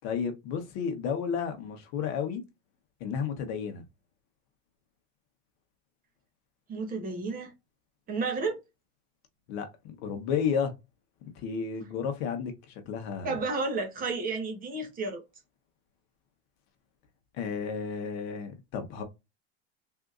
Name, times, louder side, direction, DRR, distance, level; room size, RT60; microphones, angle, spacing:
voice 1, 0.0-2.4 3.0-3.8 9.5-10.7 11.3-13.4 17.4-19.0, left 6 dB, 50° left, 1.0 m, -32 dB
voice 2, 6.7-7.5 8.1-8.6 13.2-15.2, right 3 dB, 25° right, 0.9 m, -31 dB
3.7 x 2.7 x 2.4 m
supercardioid pair, 140°, 34 cm